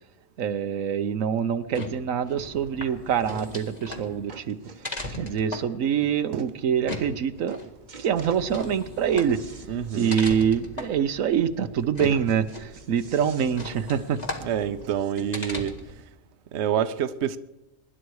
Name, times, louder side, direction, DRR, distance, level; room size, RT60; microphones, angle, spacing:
voice 1, 0.4-4.6 5.1-7.6 8.0-9.4 9.9-14.2, right 8 dB, 85° right, 1.3 m, -25 dB
sound 1, 1.5-16.0, left 1 dB, 30° left, 2.0 m, -38 dB
sound 2, 2.7-2.8 3.4-3.7 3.9-5.5 6.1-6.2 6.4-6.5 6.9-7.2 7.5-8.5 8.9-10.2 10.6-10.7 11.0-11.1 12.0-15.4 16.2-16.3, right 5 dB, 40° right, 1.0 m, -47 dB
Breathing / Train, 7.8-13.3, equal, 55° left, 3.3 m, -52 dB
voice 2, 9.7-10.2 14.4-15.8 16.5-17.4, right 9 dB, 60° right, 1.0 m, -27 dB
24.5 x 11.5 x 4.8 m
omnidirectional pair, 1.3 m